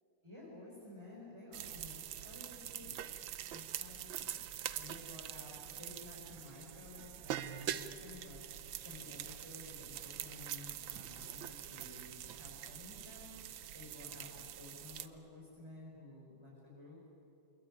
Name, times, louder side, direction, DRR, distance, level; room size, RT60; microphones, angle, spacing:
voice 1, 0.2-3.0 3.5-4.4 4.8-17.0, left 2 dB, 15° right, -5 dB, 5.3 m, -53 dB
sound 1, 1.5-15.1, right 11 dB, 85° right, 1.7 m, -44 dB
28.0 x 21.0 x 9.9 m, 3.0 s
omnidirectional pair, 2.1 m